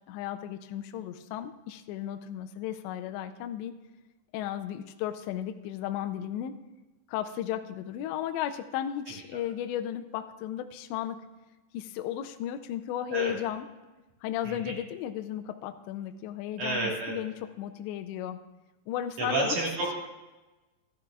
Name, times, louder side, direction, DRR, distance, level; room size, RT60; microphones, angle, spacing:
voice 1, 0.1-3.7 4.3-6.5 7.1-11.2 11.7-13.7 14.2-18.4 18.9-19.6, left 11 dB, 85° left, 9 dB, 2.6 m, -34 dB
voice 2, 16.6-17.2 19.2-19.9, right 2 dB, 55° right, -4 dB, 2.4 m, -30 dB
13.5 x 12.5 x 2.4 m, 1.1 s
omnidirectional pair, 5.6 m